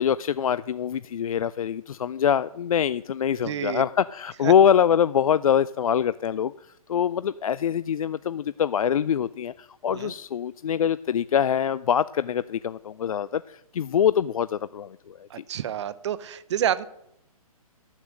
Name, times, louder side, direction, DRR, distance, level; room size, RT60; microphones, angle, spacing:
voice 1, 0.0-6.5 6.9-15.3, left 8 dB, 70° left, 16 dB, 0.4 m, -24 dB
voice 2, 3.4-3.8 4.4-4.5 9.9-10.1 15.3-16.8, right 10 dB, 50° right, 17 dB, 0.7 m, -28 dB
13.0 x 7.3 x 6.4 m, 0.78 s
figure-of-eight pair, 130°, 19 cm